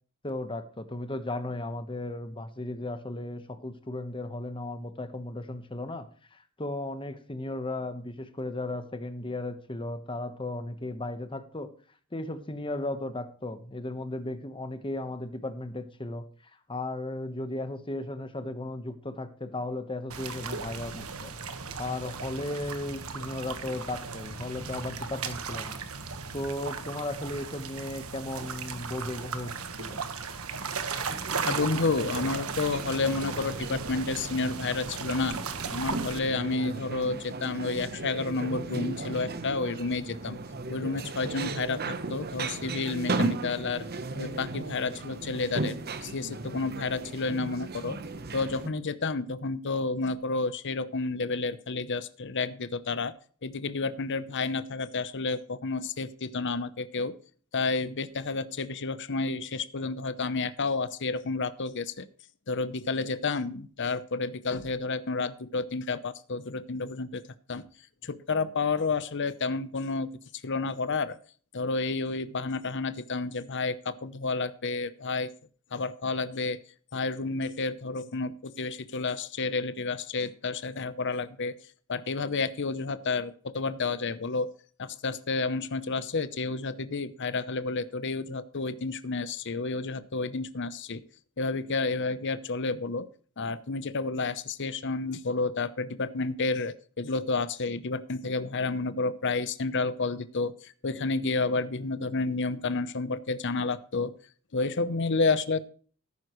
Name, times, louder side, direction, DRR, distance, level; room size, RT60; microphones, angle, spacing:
voice 1, 0.2-11.7 12.1-16.2 16.7-21.3 21.6-25.8 26.3-29.5 29.8-30.0, left 2 dB, 25° left, 10 dB, 1.2 m, -35 dB
sound 1, 20.1-36.2, right 5 dB, 70° right, 1.5 m, -36 dB
sound 2, 31.1-48.7, right 3 dB, 45° right, 1.0 m, -36 dB
voice 2, 31.4-35.4 35.7-40.4 40.7-43.8 44.2-48.0 48.3-53.1 53.4-57.2 57.5-62.1 62.5-67.2 67.5-67.6 68.0-70.1 70.4-71.2 71.5-75.3 75.7-76.6 76.9-81.6 81.9-84.5 84.8-91.0 91.4-93.1 93.4-104.2 104.5-105.6, left 3 dB, 55° left, 14 dB, 0.8 m, -30 dB
14.0 x 11.0 x 3.2 m, 0.44 s
head